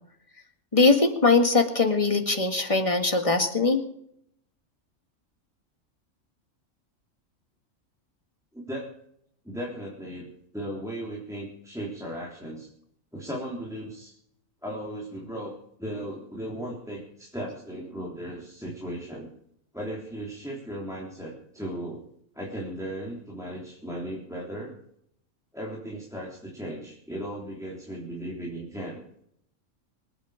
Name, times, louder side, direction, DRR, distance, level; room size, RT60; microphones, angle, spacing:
voice 1, 0.7-3.8, left 3 dB, 25° left, 5 dB, 1.9 m, -21 dB
voice 2, 8.5-8.9 9.5-12.7 13.1-14.2 14.6-15.5 15.8-19.3 19.7-22.0 22.3-24.8 25.5-29.0, right 1 dB, ahead, -4 dB, 3.5 m, -36 dB
25.5 x 9.3 x 5.0 m, 0.72 s
omnidirectional pair, 1.4 m